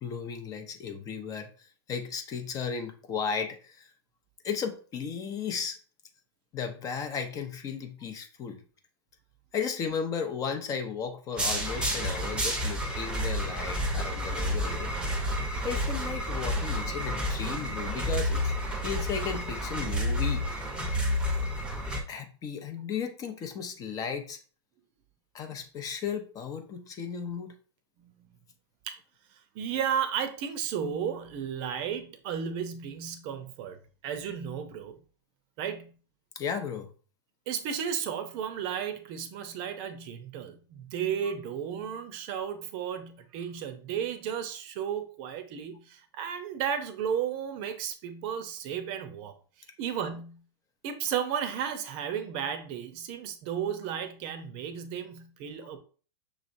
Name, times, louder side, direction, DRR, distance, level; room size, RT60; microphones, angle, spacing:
voice 1, 0.0-3.9 4.4-5.8 6.5-8.6 9.5-14.9 15.6-18.5 18.8-20.5 22.1-24.4 25.3-27.5 36.3-36.9 41.2-41.3, left 6 dB, 25° left, 6 dB, 0.6 m, -35 dB
sound 1, 11.4-22.0, equal, 5° right, 0.8 m, -30 dB
voice 2, 29.3-33.8 34.0-35.0 35.6-35.9 37.5-49.3 49.8-50.4 50.8-55.8, right 8 dB, 40° right, 9 dB, 0.7 m, -34 dB
6.1 x 3.1 x 2.6 m, 0.39 s
hypercardioid pair, 135°, 14 cm